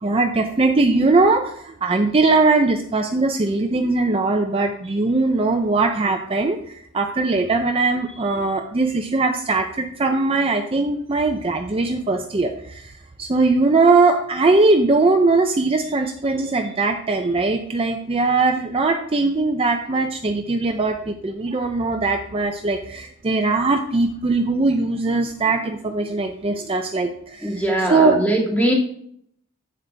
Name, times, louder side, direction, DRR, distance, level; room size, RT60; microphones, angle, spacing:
voice 1, 0.0-12.9 13.2-27.6 27.9-28.2, right 3 dB, 25° right, 4 dB, 0.5 m, -20 dB
voice 2, 27.4-28.7, right 1 dB, 5° left, -3 dB, 2.3 m, -21 dB
8.7 x 7.7 x 3.4 m, 0.68 s
head